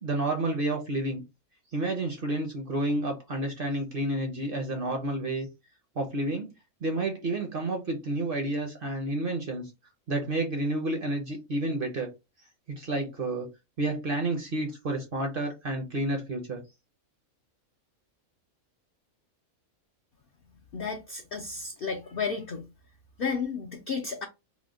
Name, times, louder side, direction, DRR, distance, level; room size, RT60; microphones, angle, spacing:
voice 1, 0.0-1.2 1.7-5.5 6.0-6.5 6.8-9.7 10.1-12.1 12.7-13.5 13.8-16.6, right 2 dB, 55° right, 0.7 m, -30 dB
voice 2, 20.7-22.7 23.2-24.3, left 5 dB, 70° left, 0.5 m, -32 dB
3.0 x 2.0 x 3.6 m
omnidirectional pair, 1.5 m